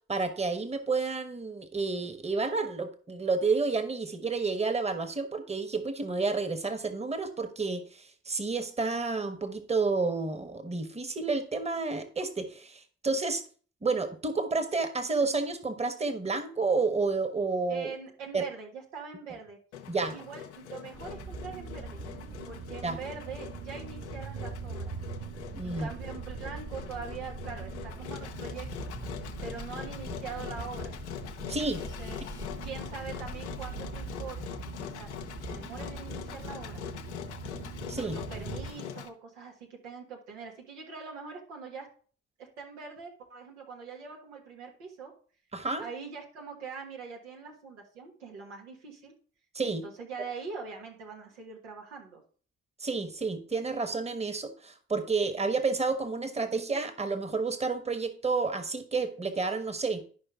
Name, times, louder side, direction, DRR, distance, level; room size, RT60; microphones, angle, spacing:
voice 1, 0.1-13.4 13.8-17.9 18.3-18.4 19.9-20.1 22.8-23.0 25.5-25.9 31.5-31.8 37.9-38.2 45.5-45.8 49.5-49.8 52.8-60.0, right 4 dB, 20° right, 9 dB, 1.3 m, -30 dB
voice 2, 17.7-19.6 20.0-22.0 22.4-25.0 25.6-28.9 29.4-30.9 31.7-32.2 32.6-34.4 34.8-35.1 35.4-36.8 38.0-41.9 42.4-45.1 45.8-49.1 49.6-52.2, right 5 dB, 85° right, 0 dB, 1.6 m, -43 dB
Engine, 19.7-39.1, left 9 dB, 90° left, 0.7 m, -43 dB
sound 1, 20.9-38.7, right 4 dB, 50° right, 1.9 m, -41 dB
11.5 x 5.2 x 3.6 m, 0.43 s
hypercardioid pair, 40°, 34 cm